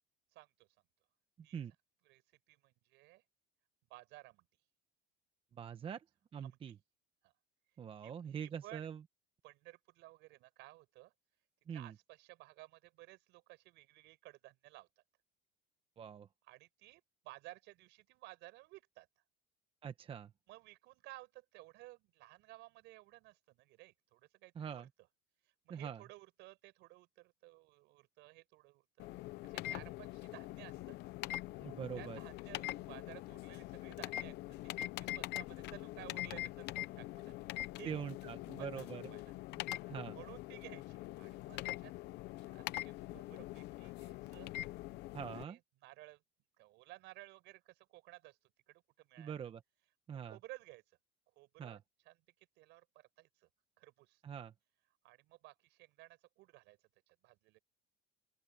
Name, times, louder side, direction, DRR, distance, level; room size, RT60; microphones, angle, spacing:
voice 1, 0.3-0.7 1.4-1.6 2.0-2.2 2.5-3.2 3.9-4.5 6.4-6.7 7.2-7.3 8.0-8.1 8.4-8.9 9.4-11.1 11.7-14.9 16.4-19.1 20.5-24.9 25.4-31.0 32.0-34.4 34.6-37.4 37.8-38.0 38.6-39.3 40.1-41.9 42.4-44.5 45.3-46.2 46.6-48.4 48.7-49.3 50.1-50.8 51.4-51.8 52.1-52.2 52.6-53.5 53.8-54.2 55.0-56.8 57.1-57.6, right 19 dB, 65° right, 5.6 m, -56 dB
voice 2, 5.6-6.0 6.3-6.7 7.8-9.0 11.7-11.9 16.0-16.3 19.8-20.3 24.6-24.9 25.7-26.0 31.6-32.2 37.8-39.1 39.8-40.2 45.1-45.6 49.2-49.6 50.1-50.4 51.6-51.8 54.2-54.5, right 8 dB, 30° right, 1.0 m, -44 dB
sound 1, 29.0-45.4, left 17 dB, 60° left, 0.7 m, -44 dB
open air
cardioid pair, 140°, 20 cm